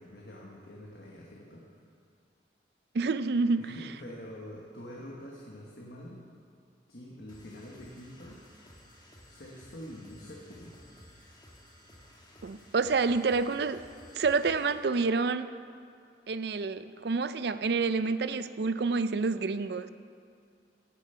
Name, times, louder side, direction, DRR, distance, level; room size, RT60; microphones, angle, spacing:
voice 1, 0.0-1.6 3.6-6.3 6.9-8.4 9.3-10.8, left 1 dB, 60° left, -3 dB, 1.4 m, -46 dB
voice 2, 2.9-3.8 12.4-13.8 14.1-15.6 16.3-19.9, right 4 dB, 60° right, 13 dB, 0.4 m, -28 dB
sound 1, 7.3-14.8, equal, 25° left, 1.5 m, -55 dB
16.0 x 7.0 x 5.7 m, 2.4 s
head